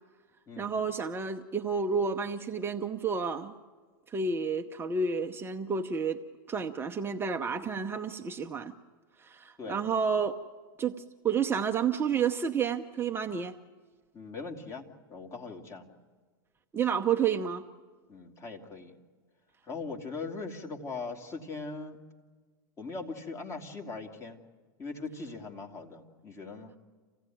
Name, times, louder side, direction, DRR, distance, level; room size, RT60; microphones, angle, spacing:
voice 1, 0.6-3.5 4.1-6.2 6.5-8.7 9.2-10.4 10.8-10.9 11.2-13.5 16.7-17.6, right 6 dB, 20° right, 4 dB, 0.8 m, -30 dB
voice 2, 14.1-15.9 18.1-19.0 19.6-22.0 22.8-24.4 24.8-26.7, left 3 dB, 25° left, 3 dB, 2.6 m, -40 dB
27.5 x 16.0 x 9.3 m, 1.5 s
hypercardioid pair, 105°, 12 cm